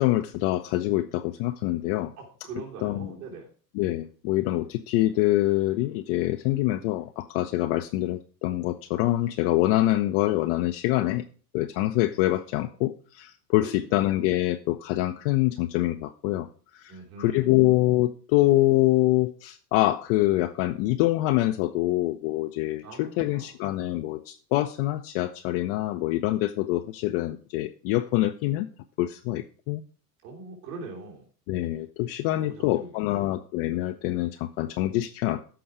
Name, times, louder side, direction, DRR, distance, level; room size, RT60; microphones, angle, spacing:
voice 1, 0.0-2.1 2.8-3.1 3.7-11.2 11.5-16.5 16.7-16.9 17.2-28.7 29.0-29.8 31.5-35.4, left 16 dB, 35° left, 6 dB, 0.6 m, -25 dB
voice 2, 2.2-3.5 13.6-13.9 16.9-17.6 22.8-23.5 30.2-31.2 32.3-33.3, right 3 dB, 60° right, -1 dB, 3.4 m, -42 dB
13.5 x 5.4 x 4.8 m, 0.42 s
figure-of-eight pair, 90°, 50 cm